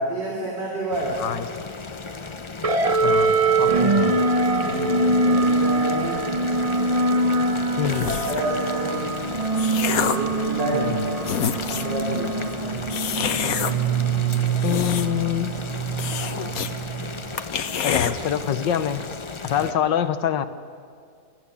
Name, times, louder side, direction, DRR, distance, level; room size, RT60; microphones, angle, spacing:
voice 1, 0.0-1.2 4.6-6.4 8.1-9.2 10.1-11.1 11.7-12.5 19.4-19.7, right 1 dB, 75° right, -2 dB, 4.1 m, -29 dB
Boiling, 0.9-19.7, left 4 dB, 35° left, 0.4 m, -36 dB
sound 1, 2.6-17.4, right 3 dB, 35° right, 0.6 m, -23 dB
voice 2, 3.0-4.2 7.8-8.1 10.7-11.0 14.6-15.5 17.8-19.1 19.4-20.5, left 10 dB, 80° left, 11 dB, 1.7 m, -25 dB
sound 2, 7.8-8.5 9.2-10.3 10.9-11.0 11.2-12.0 12.9-13.7 14.4-15.3 15.6-15.7 16.0-16.7 17.0-17.1 17.4-18.1, left 7 dB, 60° left, 1.3 m, -27 dB
28.5 x 14.0 x 9.8 m, 2.2 s
omnidirectional pair, 1.9 m